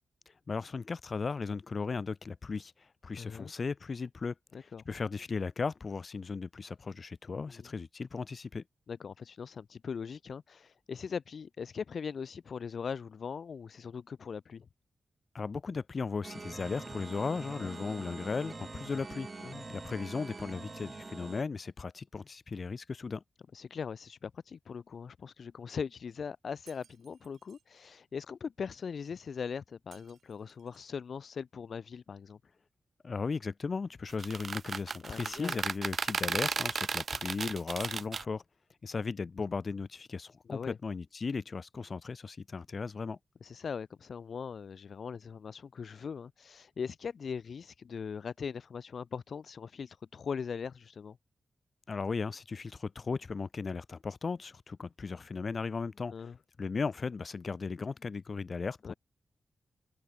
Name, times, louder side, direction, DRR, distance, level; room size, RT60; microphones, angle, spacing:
voice 1, 0.5-2.7 3.0-8.6 15.3-23.2 33.0-38.4 38.8-43.2 51.9-56.3 56.6-58.9, left 4 dB, 50° left, 1.1 m, -36 dB
voice 2, 3.2-3.5 4.5-4.8 7.5-7.7 8.9-14.7 19.4-19.6 23.5-32.4 35.0-35.6 40.5-40.8 43.4-51.2 56.1-56.4 58.8-58.9, left 6 dB, 65° left, 0.7 m, -40 dB
sound 1, 16.2-21.4, right 3 dB, 35° right, 1.5 m, -44 dB
Shatter, 26.7-27.7 29.9-31.0, right 8 dB, 80° right, 5.0 m, -62 dB
sound 2, 34.1-38.2, right 5 dB, 55° right, 0.7 m, -34 dB
cardioid pair, 70°, 0 cm